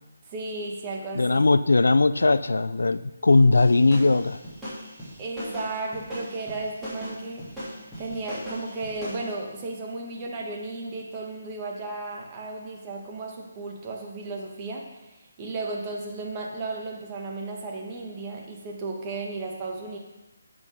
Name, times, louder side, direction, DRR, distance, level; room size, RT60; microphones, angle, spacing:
voice 1, 0.3-1.4 5.2-7.4 8.0-20.0, right 3 dB, 25° right, 0 dB, 1.6 m, -34 dB
voice 2, 1.1-4.4, left 3 dB, 75° left, 15 dB, 0.4 m, -19 dB
sound 1, 3.5-9.3, equal, 5° right, 3.1 m, -38 dB
8.3 x 6.2 x 5.3 m, 1.1 s
figure-of-eight pair, 150°, 0 cm